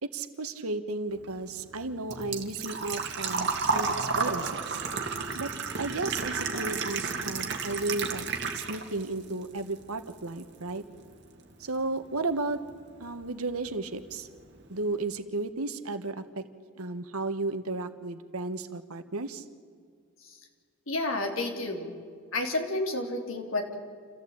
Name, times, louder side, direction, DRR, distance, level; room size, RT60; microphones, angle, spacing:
voice 1, 0.0-4.8 5.3-5.5 5.8-8.2 8.5-10.8 11.6-12.6 13.0-14.3 14.7-16.4 16.8-19.4, right 2 dB, 80° right, 10 dB, 1.4 m, -34 dB
Engine / Trickle dribble / Fill (with liquid), 1.1-9.1 9.4-10.4 10.7-10.8 12.7-12.8 13.0-13.3 13.7-13.8 14.0-14.1, right 4 dB, 50° right, 2.0 m, -32 dB
voice 2, 20.9-21.9 22.3-23.8, left 2 dB, 65° left, 3 dB, 3.3 m, -30 dB
28.0 x 14.5 x 8.8 m, 2.1 s
head